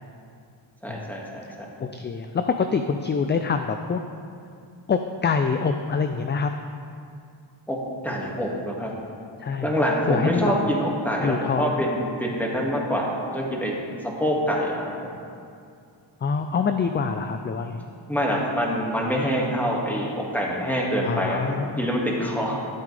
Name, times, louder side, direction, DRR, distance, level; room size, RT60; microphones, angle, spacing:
voice 1, 0.8-1.5 7.7-7.8 8.0-8.9 9.6-13.7 14.2-14.9 18.1-22.6, equal, 5° left, -3 dB, 2.0 m, -25 dB
voice 2, 1.8-4.0 4.9-6.5 9.4-9.8 10.1-10.5 11.2-11.9 16.2-17.8 21.0-22.2 22.5-22.6, left 5 dB, 25° left, 7 dB, 0.4 m, -25 dB
12.5 x 8.2 x 3.4 m, 2.4 s
cardioid pair, 80°, 47 cm